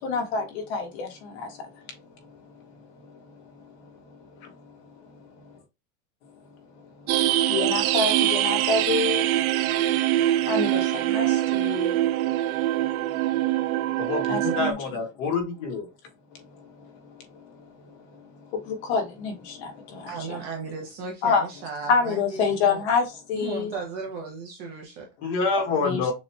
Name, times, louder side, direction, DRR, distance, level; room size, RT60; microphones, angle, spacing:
voice 1, 0.0-1.9 2.2-5.6 6.7-14.8 16.3-20.4 21.2-21.4 21.9-23.7 25.8-26.1, left 5 dB, 50° left, 1.6 m, -30 dB
sound 1, 7.1-14.7, right 14 dB, 75° right, 0.6 m, -23 dB
voice 2, 14.0-15.9 25.2-26.1, left 4 dB, 30° left, 1.5 m, -27 dB
voice 3, 20.1-22.8 23.4-25.0, right 5 dB, 25° right, 0.7 m, -36 dB
6.4 x 3.1 x 2.2 m
supercardioid pair, 180°, 43 cm